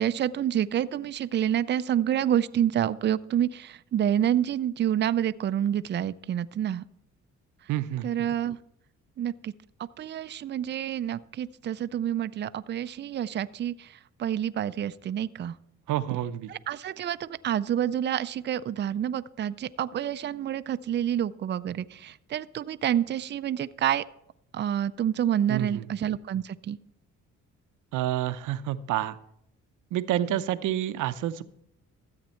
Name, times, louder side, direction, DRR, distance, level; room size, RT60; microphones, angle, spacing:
voice 1, 0.0-6.8 8.0-8.6 9.2-9.5 10.0-15.5 16.5-24.0 24.5-26.8, right 10 dB, 35° right, 14 dB, 0.4 m, -28 dB
voice 2, 7.7-8.1 15.9-16.5 25.5-25.8 27.9-29.2 29.9-31.4, right 12 dB, 80° right, 12 dB, 0.7 m, -28 dB
13.5 x 8.1 x 4.4 m, 0.75 s
cardioid pair, 90°, 30 cm